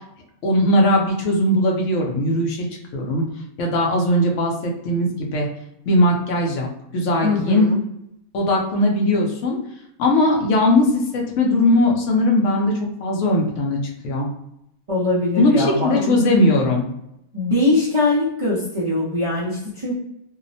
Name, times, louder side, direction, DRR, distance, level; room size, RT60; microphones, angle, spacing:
voice 1, 0.4-2.7 2.9-3.2 3.6-5.5 5.9-6.7 6.9-7.7 8.3-9.6 10.0-12.7 13.0-13.8 14.0-14.3 15.4-16.9, left 1 dB, 65° left, 0 dB, 0.9 m, -19 dB
voice 2, 7.2-7.8 14.9-16.1 17.3-19.9, left 2 dB, 55° right, -9 dB, 0.3 m, -21 dB
2.7 x 2.0 x 2.6 m, 0.82 s
omnidirectional pair, 1.5 m